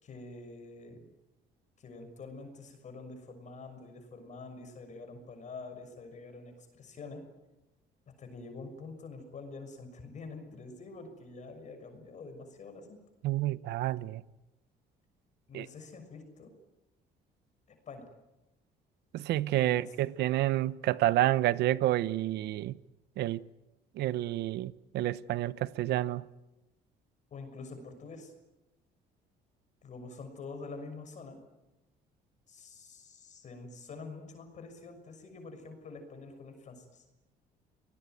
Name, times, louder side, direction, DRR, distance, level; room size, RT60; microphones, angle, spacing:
voice 1, 0.0-1.0 1.8-7.2 8.2-13.0 15.5-16.5 17.9-18.1 19.6-19.9 27.3-28.3 29.8-31.4 32.5-37.0, left 3 dB, 45° left, 6.4 m, -46 dB
voice 2, 13.2-14.2 15.5-15.7 19.1-22.8 23.2-23.5 24.0-26.3, right 15 dB, 80° right, 0.9 m, -29 dB
28.0 x 20.0 x 9.4 m
cardioid pair, 110°, 17 cm